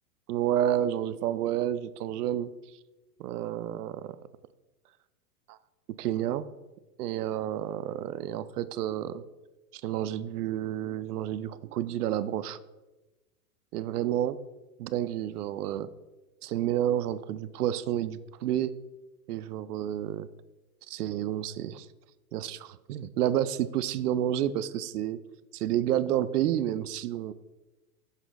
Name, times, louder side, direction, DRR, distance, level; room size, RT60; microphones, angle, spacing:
voice 1, 0.3-2.5 3.2-4.2 5.5-5.6 6.0-6.5 7.0-9.2 9.8-12.6 13.7-14.4 14.8-15.9 16.4-18.7 19.3-20.3 20.9-21.9 22.3-25.2 25.5-27.3, right 11 dB, 75° right, 15 dB, 0.5 m, -30 dB
7.2 x 3.9 x 4.0 m, 1.1 s
hypercardioid pair, 110°, 47 cm